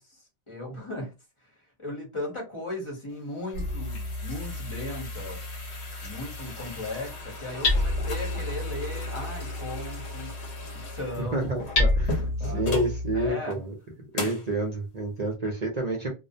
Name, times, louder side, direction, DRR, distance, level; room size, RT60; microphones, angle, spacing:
voice 1, 0.0-5.4 6.0-10.4 10.7-11.5 12.1-12.7 13.1-13.6, left 1 dB, 30° left, 0.9 m, -37 dB
sound 1, 3.1-13.0 13.5-13.6 14.1-14.5, left 3 dB, 90° left, 1.1 m, -38 dB
Hammer, 3.5-13.3, left 2 dB, 65° left, 1.0 m, -31 dB
voice 2, 11.2-13.7 14.1-16.1, right 1 dB, 45° right, 0.6 m, -29 dB
2.4 x 2.0 x 2.6 m
omnidirectional pair, 1.1 m